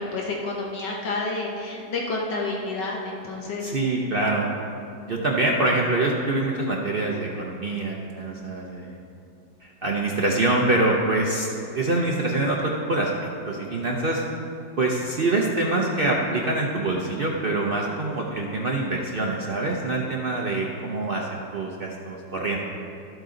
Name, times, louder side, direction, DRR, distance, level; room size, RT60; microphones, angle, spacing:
voice 1, 0.0-3.8, left 3 dB, 65° left, -1 dB, 1.6 m, -29 dB
voice 2, 3.6-4.5 5.1-9.0 9.6-11.5 11.7-13.1 13.5-14.2 14.8-22.6, right 2 dB, 70° right, -2 dB, 0.5 m, -25 dB
12.5 x 7.7 x 3.8 m, 2.5 s
omnidirectional pair, 2.1 m